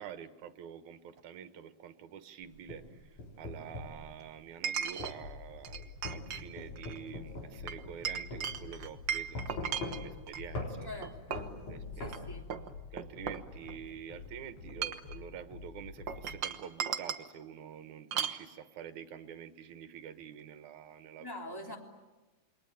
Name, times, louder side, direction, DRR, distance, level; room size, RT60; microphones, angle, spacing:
voice 1, 0.0-10.9 11.7-12.3 12.9-21.3, right 8 dB, 80° right, 11 dB, 2.6 m, -47 dB
Chink clink, 1.2-1.3 4.6-5.2 5.6-6.4 6.8-7.0 7.7-10.5 11.0-11.6 12.1-12.2 12.5-13.9 14.6-15.2 16.1-17.3 18.1-18.4, right 8 dB, 55° right, 1.3 m, -37 dB
sound 1, 2.4-4.0 5.0-5.2 6.1-8.0 8.3-8.5 9.4-10.2 10.6-10.7 11.4-12.1, left 2 dB, 75° left, 5.6 m, -40 dB
sound 2, 5.2-16.4, left 5 dB, 50° left, 2.5 m, -49 dB
voice 2, 10.8-11.5 11.9-12.5 21.2-21.8, left 1 dB, 5° left, 2 dB, 3.0 m, -44 dB
28.0 x 23.0 x 9.2 m, 1.1 s
omnidirectional pair, 3.4 m